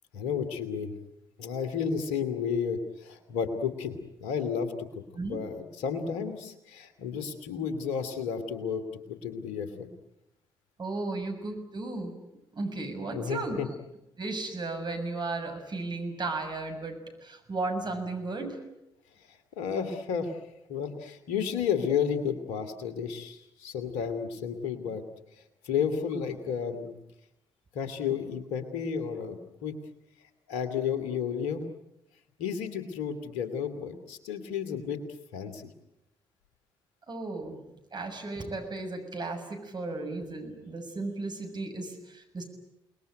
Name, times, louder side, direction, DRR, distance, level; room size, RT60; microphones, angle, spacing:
voice 1, 0.1-0.9 1.4-5.0 5.3-8.8 9.1-9.9 13.1-13.7 19.6-20.4 20.7-25.0 25.6-26.9 27.7-29.7 30.5-31.6 32.4-35.0 35.3-35.7, left 7 dB, 75° left, 10 dB, 2.6 m, -32 dB
voice 2, 10.8-12.1 12.5-13.6 14.2-18.6 37.1-37.6 37.9-42.4, right 3 dB, 40° right, 4 dB, 6.9 m, -35 dB
29.0 x 20.5 x 9.2 m, 0.87 s
hypercardioid pair, 45°, 12 cm